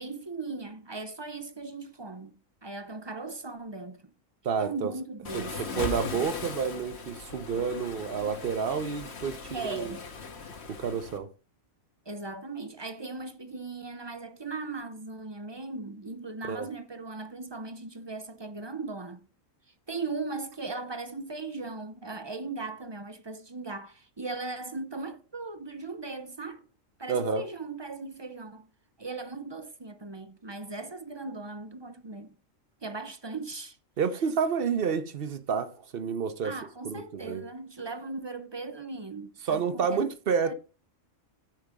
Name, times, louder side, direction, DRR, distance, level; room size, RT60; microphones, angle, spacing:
voice 1, 0.0-2.3 2.6-4.1 4.6-5.9 9.5-10.1 12.1-19.2 19.9-26.6 27.0-28.7 29.0-32.4 32.8-33.8 36.4-40.0 40.4-40.5, right 3 dB, 35° right, 0.4 m, -38 dB
voice 2, 4.4-4.9 5.3-9.9 10.7-11.3 16.4-16.7 27.1-27.5 34.0-36.5 36.8-37.5 39.4-40.5, right 6 dB, 50° right, 0.9 m, -29 dB
Waves surf, 5.2-11.2, left 4 dB, 55° left, 1.3 m, -39 dB
13.5 x 5.0 x 3.5 m
omnidirectional pair, 1.4 m